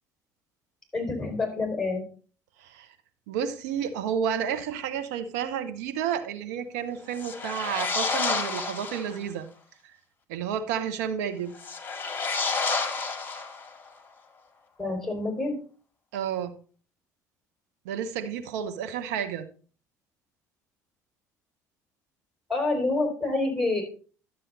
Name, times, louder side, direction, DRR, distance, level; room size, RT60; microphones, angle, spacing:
voice 1, 0.9-2.0 14.8-15.5 22.5-23.8, left 2 dB, 5° left, 4 dB, 4.7 m, -27 dB
voice 2, 2.6-2.9 3.3-9.5 9.8-9.9 10.3-11.5 16.1-16.5 17.8-19.5, right 8 dB, 80° right, 8 dB, 1.1 m, -31 dB
sound 1, 7.1-9.2 11.5-13.9, left 4 dB, 25° left, 2.3 m, -30 dB
11.5 x 7.4 x 4.1 m, 0.40 s
hypercardioid pair, 65°, 9 cm